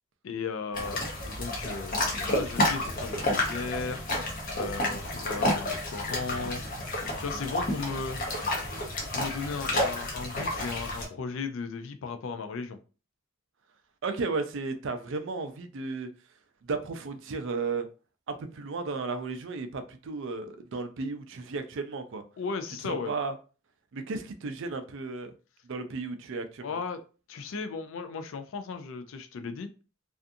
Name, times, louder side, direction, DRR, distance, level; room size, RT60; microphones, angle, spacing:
voice 1, 0.2-4.0 4.5-6.6 7.2-8.2 9.1-12.8 22.4-23.1 26.6-27.0 27.3-29.7, left 4 dB, 65° left, 0.4 m, -36 dB
sound 1, 0.7-11.0, left 1 dB, 40° left, 0.8 m, -30 dB
voice 2, 14.0-16.1 16.6-17.9 18.3-22.2 22.8-23.3 23.9-25.3 25.6-26.8, right 4 dB, 60° right, 0.4 m, -34 dB
2.5 x 2.4 x 2.5 m
head